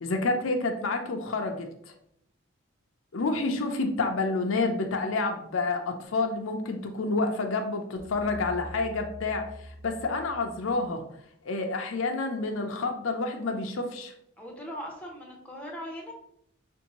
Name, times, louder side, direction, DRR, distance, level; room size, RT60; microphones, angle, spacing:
voice 1, 0.0-1.7 3.1-11.0 11.4-14.1, left 3 dB, 70° left, 4 dB, 0.5 m, -29 dB
sound 1, 8.0-11.1, equal, 35° right, 0.7 m, -45 dB
voice 2, 14.4-16.1, equal, 5° left, -1 dB, 0.7 m, -39 dB
5.0 x 2.6 x 2.9 m, 0.71 s
head